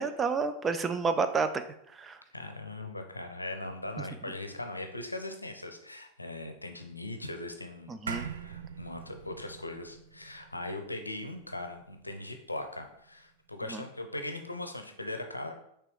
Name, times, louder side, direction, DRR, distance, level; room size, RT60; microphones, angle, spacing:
voice 1, 0.0-1.6 1.9-2.2 7.9-8.3 13.7-13.8, right 4 dB, 20° right, 9 dB, 0.4 m, -30 dB
voice 2, 2.3-15.5, left 2 dB, 85° left, 6 dB, 0.6 m, -40 dB
sound 1, 8.1-12.7, right 6 dB, 70° right, 0.5 m, -43 dB
5.9 x 3.4 x 4.8 m, 0.75 s
figure-of-eight pair, 90°, 0 cm